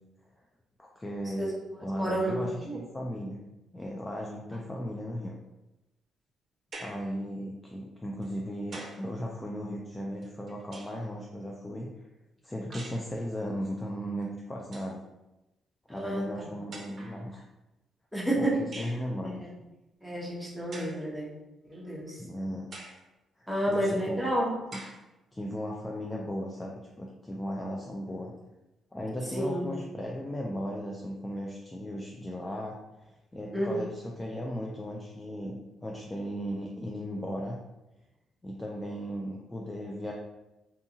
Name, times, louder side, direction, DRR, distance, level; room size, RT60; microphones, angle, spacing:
voice 1, 0.8-3.4 3.7-5.4 6.8-11.9 12.4-15.0 15.9-17.4 18.4-19.4 22.2-22.7 23.4-24.3 25.3-28.3 28.9-37.6 38.4-40.1, equal, 20° left, -1 dB, 0.3 m, -36 dB
voice 2, 1.4-2.8 15.9-16.5 18.1-18.5 19.2-19.5 20.0-21.3 21.7-22.2 23.5-24.5 29.4-29.7 33.5-33.9, right 1 dB, ahead, -5 dB, 0.9 m, -30 dB
sound 1, 6.7-7.1 8.2-9.1 10.2-11.1 12.7-13.1 14.2-14.3 14.6-15.0 16.0-16.1 16.7-17.2 18.7-19.0 20.7-21.0 21.7-21.8 22.7-23.1 23.7-23.8 24.7-25.0, right 2 dB, 50° right, 0.6 m, -45 dB
2.7 x 2.3 x 2.7 m, 0.97 s
cardioid pair, 90°, 0 cm